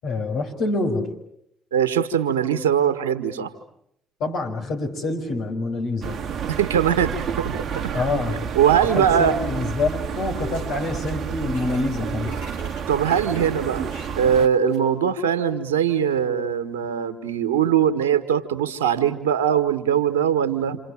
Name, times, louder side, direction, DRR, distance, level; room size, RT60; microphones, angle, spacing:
voice 1, 0.0-1.1 4.2-6.2 7.9-8.5 8.9-12.4, left 2 dB, 65° left, 2 dB, 5.8 m, -26 dB
voice 2, 1.7-3.5 6.5-7.8 8.5-9.4 12.9-13.9 14.2-20.8, right 8 dB, 85° right, 10 dB, 1.6 m, -21 dB
sound 1, 6.0-14.5, right 7 dB, 55° right, 1.3 m, -30 dB
sound 2, 9.5-10.0 10.2-14.9, equal, 85° left, 6.1 m, -47 dB
28.0 x 27.5 x 7.4 m, 0.74 s
hypercardioid pair, 50°, 0 cm